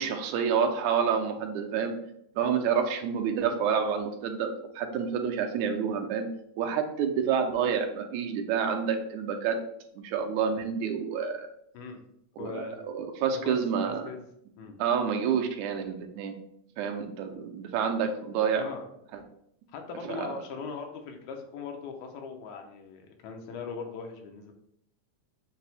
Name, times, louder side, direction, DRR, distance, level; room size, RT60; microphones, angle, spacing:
voice 1, 0.0-2.0 2.4-4.5 4.8-6.3 6.6-9.6 10.0-11.5 12.4-14.1 14.8-16.3 16.8-18.6 19.1-19.2 20.1-20.3, right 7 dB, 85° right, 4 dB, 1.9 m, -28 dB
voice 2, 12.4-12.8 13.4-13.6 13.9-14.2 14.6-14.7 18.6-18.9 19.7-24.5, left 5 dB, 85° left, 3 dB, 2.2 m, -39 dB
6.0 x 2.0 x 4.0 m, 0.72 s
omnidirectional pair, 3.3 m